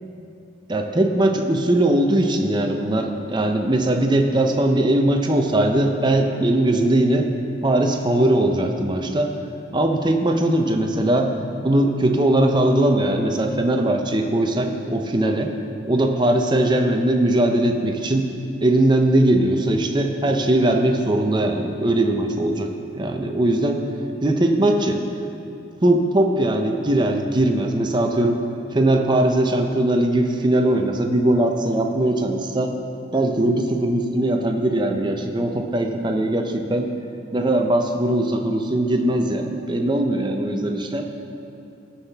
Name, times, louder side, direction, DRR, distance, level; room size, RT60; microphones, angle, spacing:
voice 1, 0.7-7.3 7.6-9.3 9.7-11.3 11.6-15.5 15.8-18.3 18.6-23.9 24.2-25.0 25.8-28.4 28.7-32.7 33.1-36.9 37.3-41.1, right 1 dB, 20° right, 3 dB, 0.6 m, -20 dB
17.0 x 5.7 x 3.5 m, 2.7 s
head